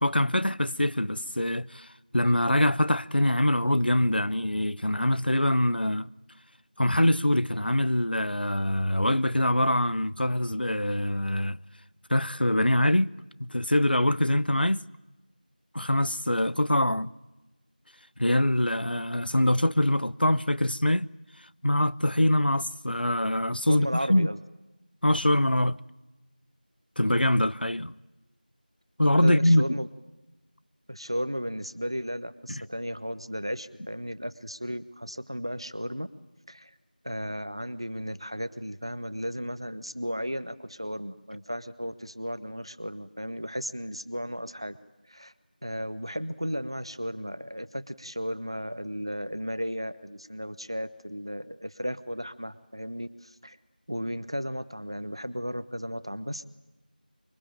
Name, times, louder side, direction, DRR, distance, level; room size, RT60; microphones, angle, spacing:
voice 1, 0.0-1.9 2.1-6.1 6.8-11.6 12.1-13.1 13.4-14.8 15.7-17.1 18.2-21.1 21.6-24.3 25.0-25.8 27.0-27.9 29.0-29.6, left 1 dB, 90° left, 0.8 m, -24 dB
voice 2, 23.7-24.4 29.2-29.9 30.9-36.1 36.5-36.7 37.0-44.8 45.1-45.3 45.6-53.6 53.9-56.5, equal, 35° right, 0.9 m, -34 dB
25.5 x 23.5 x 8.9 m
figure-of-eight pair, 180°, 5 cm